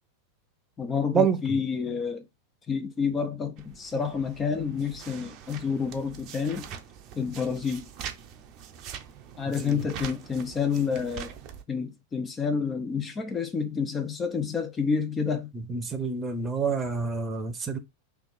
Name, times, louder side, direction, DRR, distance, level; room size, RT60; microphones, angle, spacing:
voice 1, 0.8-2.2 2.7-6.7 7.2-7.9 9.4-11.4 11.7-15.5, left 6 dB, 20° left, 0.8 m, -29 dB
sound 1, 3.6-11.6, right 8 dB, 35° right, 0.7 m, -43 dB
voice 2, 15.5-17.8, right 5 dB, 20° right, 1.0 m, -27 dB
4.0 x 2.9 x 4.2 m
figure-of-eight pair, 90°, 0 cm